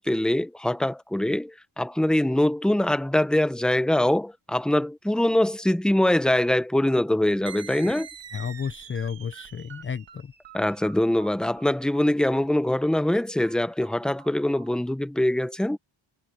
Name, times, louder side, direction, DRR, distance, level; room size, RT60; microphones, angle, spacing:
voice 1, 0.0-8.1 10.5-15.8, left 1 dB, ahead, 0.7 m, -23 dB
sound 1, 7.5-14.7, right 8 dB, 60° right, 2.0 m, -45 dB
voice 2, 8.3-10.3, left 7 dB, 30° left, 0.4 m, -32 dB
wide cardioid pair, 155°, 48 cm